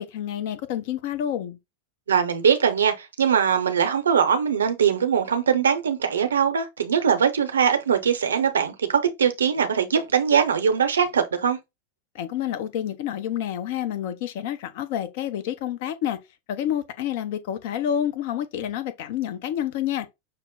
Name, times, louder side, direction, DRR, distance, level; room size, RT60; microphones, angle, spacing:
voice 1, 0.0-1.6 12.1-16.2 16.5-20.1, left 10 dB, 60° left, 0.7 m, -28 dB
voice 2, 2.1-11.6, right 7 dB, 75° right, 0.7 m, -21 dB
5.9 x 2.1 x 3.7 m
figure-of-eight pair, 90°, 0 cm